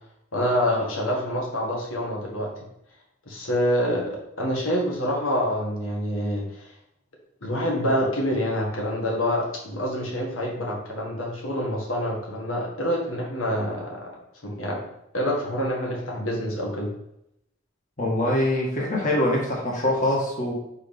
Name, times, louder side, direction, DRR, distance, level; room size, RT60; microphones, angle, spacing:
voice 1, 0.3-2.5 3.3-6.7 7.4-14.1 14.4-14.8 15.1-16.9, equal, 85° left, -2 dB, 1.7 m, -26 dB
voice 2, 18.0-20.5, left 1 dB, 40° left, -3 dB, 1.7 m, -23 dB
4.9 x 4.6 x 5.3 m, 0.81 s
head